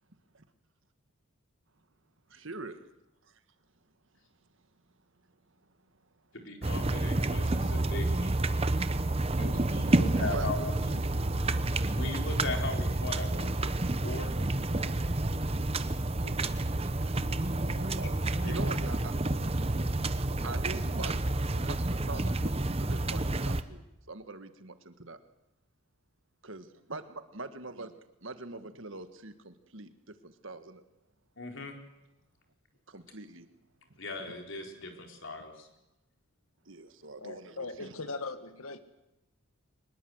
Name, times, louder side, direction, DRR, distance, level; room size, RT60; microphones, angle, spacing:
voice 1, 2.3-2.8 8.7-8.8 9.6-10.5 11.1-12.0 16.3-21.8 22.1-22.5 22.8-23.8 24.1-25.2 26.4-27.9 28.2-29.9 30.2-30.8 32.9-33.4 36.7-37.5 37.8-37.9, right 3 dB, 60° right, 10 dB, 1.7 m, -44 dB
voice 2, 6.3-8.7 9.4-11.0 11.9-14.9 16.2-16.9 18.4-18.6 31.4-31.7 34.0-35.7, left 2 dB, 55° left, 3 dB, 4.3 m, -39 dB
sound 1, 6.6-23.6, right 2 dB, 25° right, 0.9 m, -29 dB
voice 3, 37.2-38.8, left 3 dB, 75° left, 11 dB, 1.7 m, -39 dB
24.5 x 20.5 x 8.0 m, 0.91 s
head